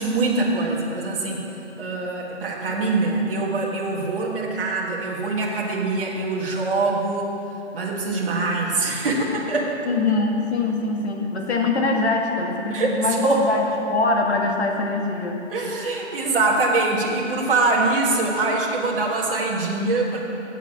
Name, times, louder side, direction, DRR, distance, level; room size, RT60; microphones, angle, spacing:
voice 1, 0.0-1.4 1.8-7.3 7.7-9.8 12.7-13.0 13.2-13.4 15.5-20.2, right 3 dB, 50° right, -4 dB, 1.6 m, -23 dB
voice 2, 9.9-13.6 13.9-15.4, left 3 dB, 60° left, 1 dB, 1.8 m, -23 dB
8.2 x 7.9 x 7.2 m, 2.8 s
hypercardioid pair, 165°, 36 cm